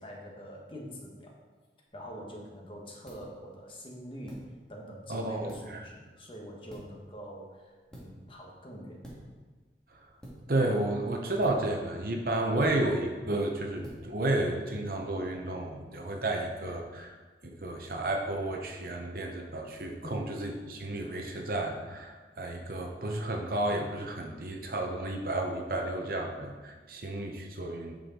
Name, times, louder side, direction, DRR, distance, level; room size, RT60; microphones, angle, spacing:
voice 1, 0.0-1.4 1.9-4.4 4.7-9.0 20.0-20.3, equal, 30° left, -1 dB, 1.3 m, -45 dB
sound 1, 1.9-15.3, equal, 5° left, 1.8 m, -52 dB
voice 2, 5.1-5.8 9.9-10.1 10.5-17.1 17.5-27.9, right 1 dB, 55° right, 2 dB, 0.9 m, -32 dB
8.3 x 6.4 x 3.9 m, 1.3 s
head